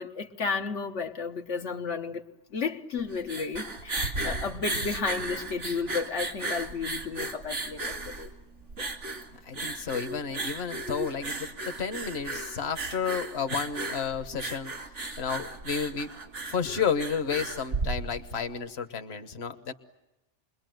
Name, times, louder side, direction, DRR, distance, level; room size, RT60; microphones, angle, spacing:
voice 1, 0.0-2.2 2.5-8.3, left 5 dB, 80° left, 1.5 m, -33 dB
sound 1, 3.0-18.4, right 2 dB, 85° right, 2.8 m, -35 dB
voice 2, 9.4-14.7 15.2-16.1 16.5-19.7, left 6 dB, 65° left, 1.5 m, -31 dB
28.5 x 22.0 x 9.2 m
omnidirectional pair, 1.2 m